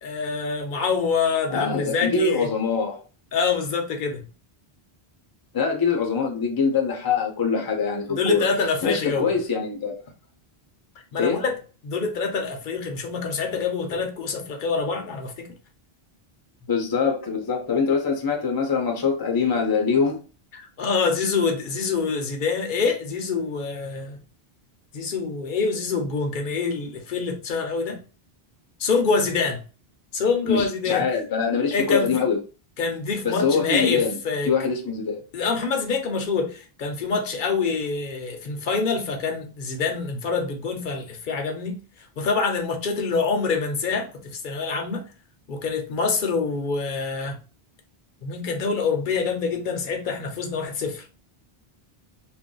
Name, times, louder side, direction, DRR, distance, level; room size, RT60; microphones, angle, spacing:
voice 1, 0.0-2.5 3.3-4.3 8.1-9.2 11.1-11.6 11.8-15.5 20.5-24.2 24.9-28.0 28.8-29.6 30.1-31.0 31.7-32.2 32.8-34.5 35.3-45.1 45.5-47.4 48.2-51.1, left 4 dB, 60° left, 0.7 m, -26 dB
voice 2, 1.5-3.0 5.5-8.5 8.8-9.9 11.2-11.4 16.7-20.2 30.5-32.4 33.2-34.2 34.5-35.2, left 5 dB, 25° left, 0.5 m, -23 dB
2.6 x 2.2 x 3.7 m
omnidirectional pair, 1.0 m